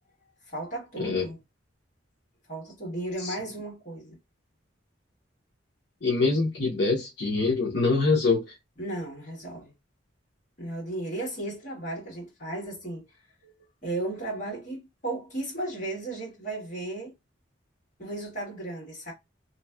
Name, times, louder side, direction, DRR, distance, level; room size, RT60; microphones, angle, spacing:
voice 1, 0.5-1.4 2.5-4.2 8.8-9.7 10.6-13.1 13.4-13.5 13.8-17.1 18.0-19.1, right 2 dB, 40° left, 1.5 m, -35 dB
voice 2, 6.0-8.6, left 3 dB, 60° left, 0.7 m, -24 dB
3.0 x 2.7 x 2.3 m
head